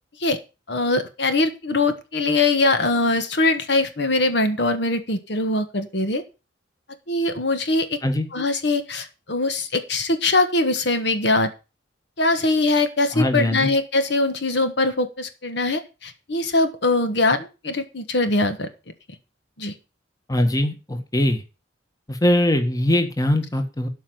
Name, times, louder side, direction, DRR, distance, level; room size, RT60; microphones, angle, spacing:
voice 1, 0.7-6.2 7.1-8.0 8.3-11.5 12.2-18.7 19.6-19.7, left 2 dB, 60° left, 9 dB, 1.5 m, -22 dB
voice 2, 13.1-13.7 20.3-21.4 22.1-23.9, left 1 dB, 20° left, 7 dB, 1.5 m, -21 dB
12.5 x 5.3 x 7.8 m, 0.31 s
head